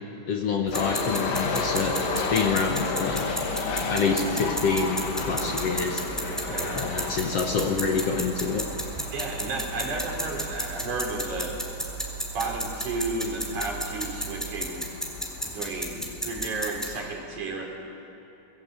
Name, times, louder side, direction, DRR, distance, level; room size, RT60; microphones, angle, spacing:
voice 1, 0.3-3.3 3.9-6.0 6.7-8.7, left 5 dB, 60° left, 3 dB, 1.9 m, -27 dB
sound 1, 0.7-15.7, left 4 dB, 85° left, 3.7 m, -33 dB
sound 2, 0.7-17.0, equal, ahead, 3.4 m, -34 dB
sound 3, 1.3-14.7, right 18 dB, 85° right, 3.7 m, -41 dB
voice 2, 6.3-6.8 9.1-11.6 12.3-14.9 15.4-17.7, right 2 dB, 65° right, 0 dB, 4.9 m, -32 dB
26.5 x 20.5 x 8.0 m, 2.9 s
omnidirectional pair, 3.8 m